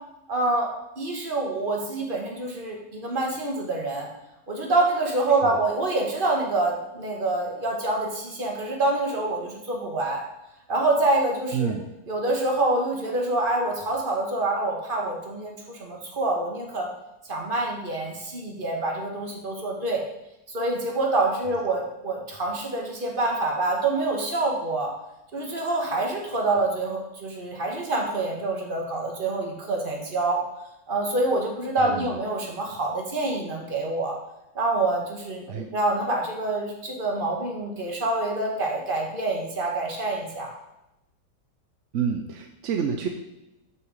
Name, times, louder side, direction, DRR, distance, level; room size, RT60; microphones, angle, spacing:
voice 1, 0.3-0.7 1.0-4.1 4.5-10.2 10.7-11.7 12.1-16.9 17.3-20.0 20.5-24.9 25.3-30.4 30.9-34.2 34.6-40.5, right 2 dB, 30° right, 0 dB, 1.7 m, -26 dB
voice 2, 11.5-11.8 31.8-32.1 35.5-35.7 41.9-43.1, right 7 dB, 60° right, 4 dB, 0.9 m, -28 dB
6.3 x 5.9 x 7.3 m, 0.91 s
omnidirectional pair, 1.8 m